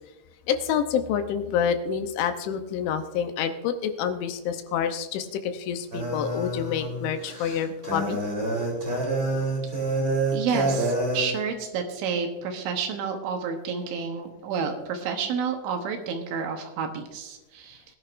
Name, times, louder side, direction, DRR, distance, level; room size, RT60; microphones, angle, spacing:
voice 1, 0.5-8.2, left 8 dB, 75° left, 7 dB, 3.0 m, -28 dB
sound 1, 5.9-11.3, right 2 dB, 15° right, 2.7 m, -27 dB
voice 2, 10.3-17.8, right 6 dB, 75° right, 4 dB, 3.2 m, -30 dB
20.0 x 10.5 x 2.6 m, 1.1 s
omnidirectional pair, 5.8 m